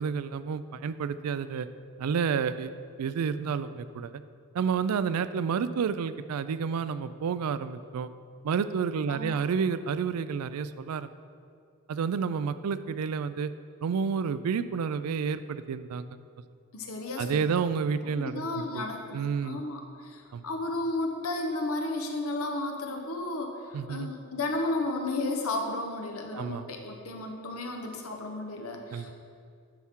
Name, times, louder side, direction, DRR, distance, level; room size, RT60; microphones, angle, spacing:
voice 1, 0.0-1.7 2.0-2.7 3.0-4.1 4.5-8.1 8.4-11.1 11.9-13.5 13.8-16.1 17.2-18.8 19.1-19.6 20.3-20.4 23.7-24.1 26.3-26.6 28.9-29.1, right 6 dB, 90° right, 13 dB, 0.4 m, -30 dB
voice 2, 9.1-9.4 16.7-17.5 18.2-29.1, left 2 dB, 70° left, 3 dB, 1.0 m, -33 dB
10.5 x 5.7 x 3.7 m, 2.3 s
head